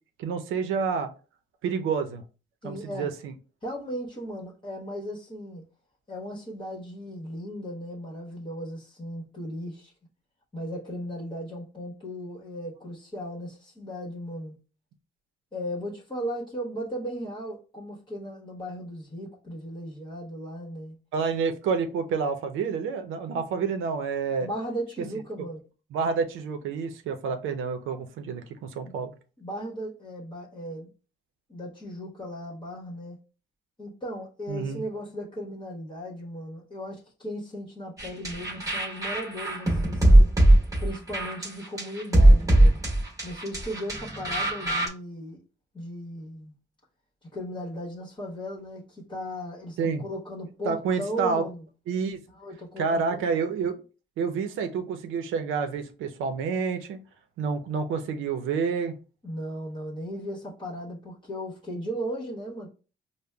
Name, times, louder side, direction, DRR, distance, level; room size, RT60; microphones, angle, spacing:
voice 1, 0.2-1.1 1.6-2.2 2.6-3.3 21.1-24.5 25.9-29.1 34.5-34.8 49.8-50.0 50.6-51.4 51.9-52.2 52.8-53.8 54.2-57.0 57.4-58.9, right 5 dB, 85° right, 0.6 m, -28 dB
voice 2, 2.6-3.1 3.6-5.6 6.1-9.9 10.5-14.5 15.5-20.9 23.5-23.7 24.4-25.6 28.8-28.9 29.4-30.9 31.5-33.2 33.8-40.3 40.8-42.8 43.2-45.4 45.7-46.5 47.3-51.6 52.3-53.2 59.2-62.7, equal, 25° left, 1.1 m, -36 dB
sound 1, 38.0-44.9, right 1 dB, 15° right, 1.3 m, -20 dB
5.1 x 2.1 x 2.3 m
cardioid pair, 90°, 20 cm